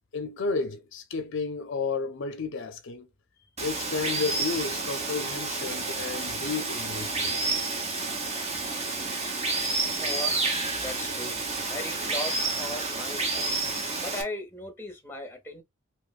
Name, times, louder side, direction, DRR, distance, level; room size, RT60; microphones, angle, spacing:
voice 1, 0.1-3.1 3.6-7.4, left 4 dB, 60° left, 0.5 m, -32 dB
Water, 3.6-14.2, right 3 dB, 30° right, 0.9 m, -30 dB
voice 2, 10.0-10.5 10.8-11.4 11.7-13.7 14.0-15.6, left 1 dB, 10° left, 0.9 m, -37 dB
3.2 x 2.9 x 2.4 m
head